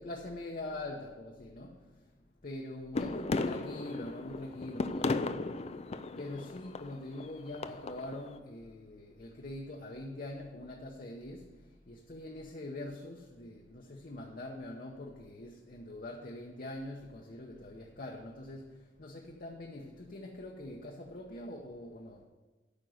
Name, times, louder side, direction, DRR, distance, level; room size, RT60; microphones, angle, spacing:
voice 1, 0.0-5.8 6.2-22.2, left 1 dB, 55° left, 0.9 m, -44 dB
sound 1, 2.9-8.3, left 3 dB, 35° left, 0.4 m, -36 dB
8.9 x 5.3 x 7.8 m
head